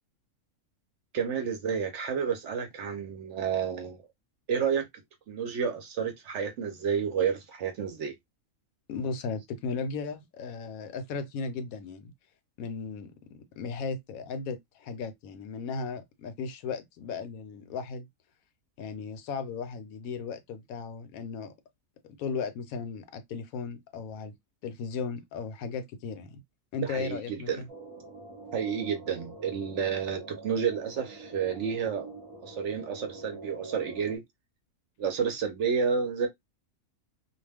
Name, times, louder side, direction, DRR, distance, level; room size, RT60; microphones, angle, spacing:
voice 1, 1.1-4.0 4.5-4.8 5.3-8.1 26.8-27.6 28.5-32.1 32.4-34.2 35.0-36.3, right 6 dB, 65° right, 0.8 m, -30 dB
voice 2, 8.9-12.1 12.6-18.1 18.8-21.5 22.2-24.4 24.6-26.4 26.7-27.7, left 5 dB, 75° left, 1.0 m, -36 dB
sound 1, 27.7-34.2, right 3 dB, 45° right, 0.3 m, -45 dB
2.3 x 2.2 x 3.3 m
omnidirectional pair, 1.5 m